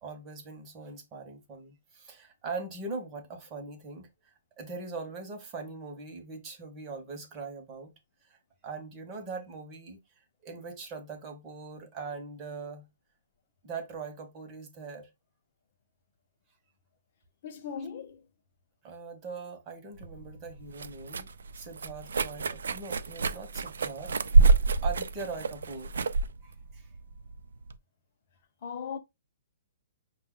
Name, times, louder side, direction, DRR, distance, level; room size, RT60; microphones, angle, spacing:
voice 1, 0.0-7.9 8.2-8.4 8.6-10.0 10.4-12.9 13.6-15.1 17.8-17.9 18.8-21.3 21.6-24.1 24.8-25.9 26.4-26.9, right 4 dB, 20° right, 0.8 m, -41 dB
voice 2, 17.4-18.3 28.6-29.0, left 6 dB, 35° left, 0.6 m, -38 dB
sound 1, 20.0-27.8, right 3 dB, 90° right, 0.4 m, -27 dB
5.4 x 2.2 x 3.6 m
hypercardioid pair, 175°, 0 cm